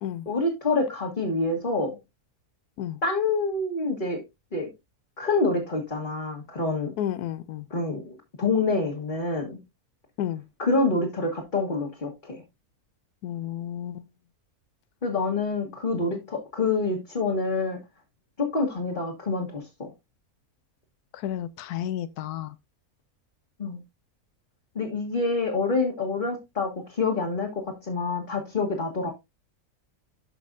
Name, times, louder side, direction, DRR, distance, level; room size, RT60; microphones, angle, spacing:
voice 1, 0.2-2.0 3.0-4.2 4.5-4.7 5.2-6.9 7.7-9.6 10.6-12.4 15.0-17.8 18.4-19.9 23.6-23.8 24.7-29.1, left 3 dB, 35° left, 1.6 m, -27 dB
voice 2, 7.0-7.7 10.2-10.4 13.2-14.1 16.0-16.2 21.1-22.5, left 11 dB, 90° left, 1.1 m, -32 dB
12.5 x 5.3 x 2.6 m
omnidirectional pair, 1.6 m